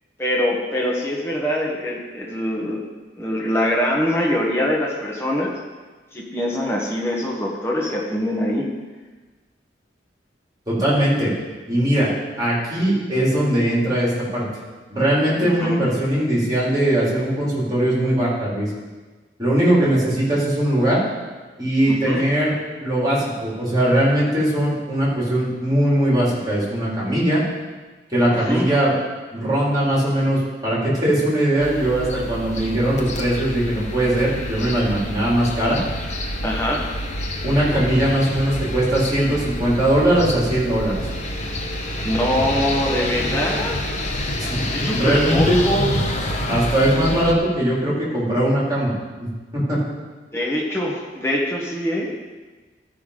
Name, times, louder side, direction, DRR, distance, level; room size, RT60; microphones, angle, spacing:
voice 1, 0.2-2.8 3.2-5.5 6.1-8.7 15.4-15.8 21.9-22.2 28.3-28.7 36.4-36.9 42.0-43.7 44.7-45.9 50.3-52.1, equal, 15° left, -2 dB, 1.4 m, -23 dB
voice 2, 10.7-11.3 11.7-12.1 12.4-14.4 14.9-18.7 19.4-21.0 21.6-22.5 22.8-27.4 28.1-28.9 29.3-35.8 37.4-41.0 44.4-44.6 44.9-45.7 46.5-48.9 49.2-49.8, right 1 dB, 20° right, -7 dB, 3.8 m, -20 dB
sound 1, 31.6-47.3, left 1 dB, 40° left, 0.9 m, -27 dB
13.5 x 5.7 x 5.0 m, 1.3 s
head